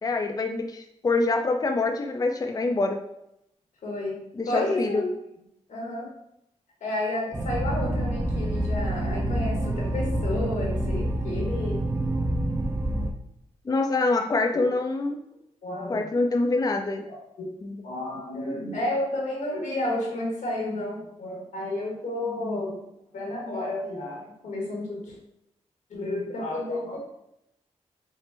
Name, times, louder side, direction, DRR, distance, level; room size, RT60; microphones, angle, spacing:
voice 1, 0.0-3.0 4.4-5.0 13.7-15.2 15.9-17.1 17.6-17.8, left 3 dB, 30° left, 4 dB, 0.4 m, -25 dB
voice 2, 3.8-4.2 4.4-5.1 5.7-6.1 6.8-11.8 14.5-14.7 15.6-16.1 17.1-17.5 17.8-22.8 23.1-25.1 25.9-27.0, left 1 dB, 85° left, -3 dB, 1.3 m, -31 dB
sound 1, 7.3-13.1, right 1 dB, 20° right, 0.5 m, -27 dB
5.0 x 2.1 x 3.3 m, 0.81 s
cardioid pair, 60°, 12 cm